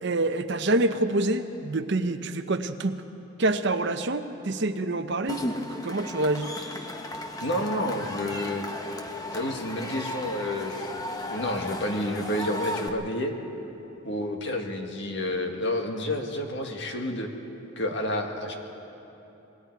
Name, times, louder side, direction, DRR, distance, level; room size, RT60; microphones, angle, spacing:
voice 1, 0.0-3.0 3.4-6.5, right 2 dB, 55° right, 8 dB, 0.8 m, -27 dB
Cheering / Crowd, 5.3-12.9, left 1 dB, 15° left, 1.0 m, -35 dB
voice 2, 7.4-8.6 9.3-13.3 14.0-17.3 17.8-18.6, left 1 dB, 55° left, 3 dB, 1.8 m, -30 dB
26.5 x 21.0 x 4.7 m, 3.0 s
head